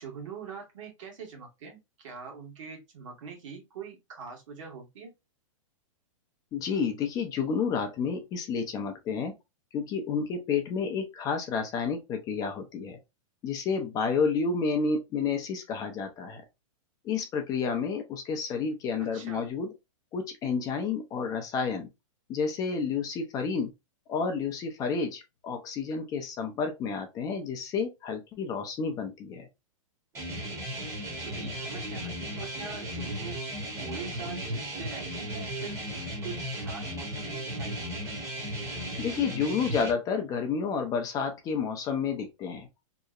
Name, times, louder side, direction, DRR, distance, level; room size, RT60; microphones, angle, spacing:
voice 1, 0.0-5.1 19.1-19.5 31.2-33.4 33.8-35.8 36.2-38.1, right 6 dB, 65° right, 1.3 m, -43 dB
voice 2, 6.5-9.3 9.7-13.0 13.4-16.4 17.0-19.7 20.1-21.9 22.3-23.7 24.1-29.5 39.0-42.7, left 5 dB, 20° left, 0.4 m, -30 dB
sound 1, 30.2-39.9, equal, 15° right, 0.8 m, -35 dB
2.8 x 2.0 x 2.3 m
hypercardioid pair, 140°, 18 cm